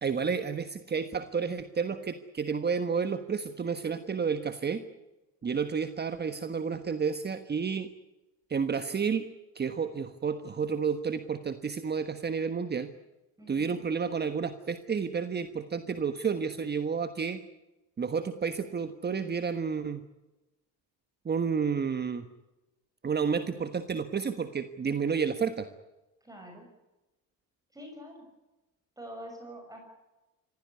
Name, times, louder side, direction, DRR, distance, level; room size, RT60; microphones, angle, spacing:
voice 1, 0.0-4.8 5.4-7.9 8.5-9.3 9.5-12.9 13.5-17.4 18.0-20.0 21.2-22.2 23.0-25.7, right 6 dB, 25° right, 9 dB, 1.4 m, -31 dB
voice 2, 13.4-13.8 26.2-26.7 27.7-28.2 29.0-29.9, equal, 10° right, 2 dB, 6.3 m, -45 dB
25.0 x 16.0 x 9.7 m, 1.0 s
cardioid pair, 110°, 37 cm